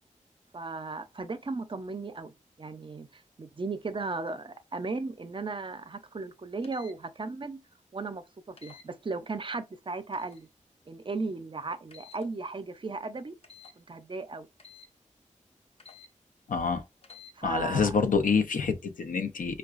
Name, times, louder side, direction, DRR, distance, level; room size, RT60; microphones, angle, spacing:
voice 1, 0.5-2.3 2.6-7.6 7.9-10.5 10.9-13.4 13.8-14.5 17.4-18.0, right 3 dB, 40° right, 0.5 m, -36 dB
sound 1, 6.6-6.9 8.6-8.9 10.1-10.4 11.9-12.2 13.4-13.8 14.6-14.9 15.8-16.1 17.0-17.3, left 6 dB, 45° left, 0.6 m, -51 dB
voice 2, 16.5-16.8 17.4-19.6, left 5 dB, 90° left, 0.5 m, -27 dB
4.7 x 2.2 x 2.4 m
wide cardioid pair, 95°, 13 cm